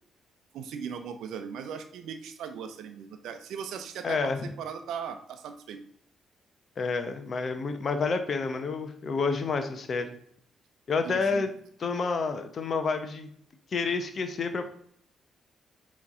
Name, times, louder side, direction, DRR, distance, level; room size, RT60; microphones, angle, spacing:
voice 1, 0.5-5.8 11.0-11.5, right 7 dB, 70° right, 8 dB, 0.7 m, -38 dB
voice 2, 4.0-4.5 6.8-10.1 10.9-11.5 11.8-13.3 13.7-14.7, left 4 dB, 50° left, 8 dB, 0.9 m, -29 dB
8.1 x 3.3 x 3.8 m, 0.66 s
hypercardioid pair, 40°, 0 cm